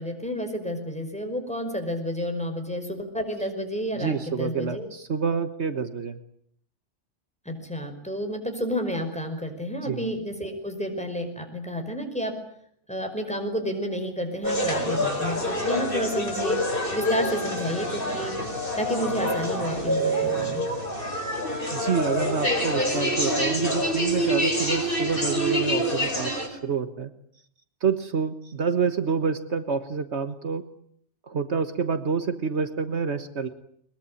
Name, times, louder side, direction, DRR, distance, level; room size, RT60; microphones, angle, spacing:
voice 1, 0.0-4.9 7.5-12.3 12.9-16.6 16.9-18.3 18.8-20.6, equal, 5° left, 4 dB, 5.3 m, -30 dB
voice 2, 4.0-6.2 9.8-10.0 21.7-27.1 27.8-30.6 31.3-33.5, right 5 dB, 65° right, 11 dB, 1.6 m, -28 dB
sound 1, 14.4-26.5, equal, 45° left, 5.0 m, -26 dB
22.5 x 22.0 x 9.9 m, 0.66 s
omnidirectional pair, 1.2 m